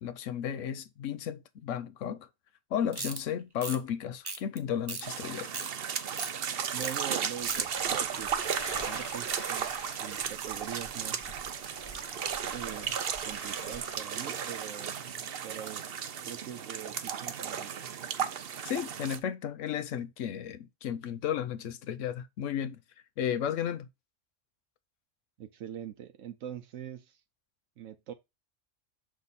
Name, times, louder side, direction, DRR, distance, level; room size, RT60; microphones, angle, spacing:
voice 1, 0.0-2.3 2.7-5.5 18.6-22.8 23.2-23.9, left 9 dB, 75° left, 1.1 m, -34 dB
sound 1, 2.9-3.2 3.6-3.8 4.2-4.6 4.9-5.0 5.4-5.7 6.2-6.3 6.8-7.0 7.2-7.6, right 3 dB, 25° right, 0.7 m, -37 dB
sound 2, 5.0-19.2, right 8 dB, 55° right, 0.8 m, -35 dB
voice 2, 6.7-8.3 8.9-9.7 10.0-11.3 12.5-13.0 13.2-15.0 15.4-15.8 16.2-17.7 25.4-27.2 27.8-28.1, right 10 dB, 80° right, 1.0 m, -43 dB
sound 3, 7.4-14.0, equal, 30° left, 1.7 m, -47 dB
6.7 x 3.7 x 4.0 m
omnidirectional pair, 1.3 m